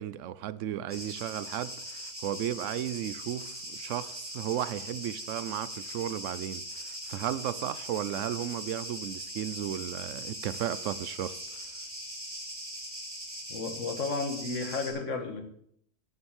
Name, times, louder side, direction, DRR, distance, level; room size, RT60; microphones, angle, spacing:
voice 1, 0.0-11.4, right 11 dB, 80° right, 0.9 m, -34 dB
sound 1, 0.9-14.9, equal, 10° right, 3.5 m, -41 dB
voice 2, 13.5-15.4, left 3 dB, 75° left, 1.7 m, -33 dB
8.8 x 7.6 x 7.1 m
omnidirectional pair, 1.3 m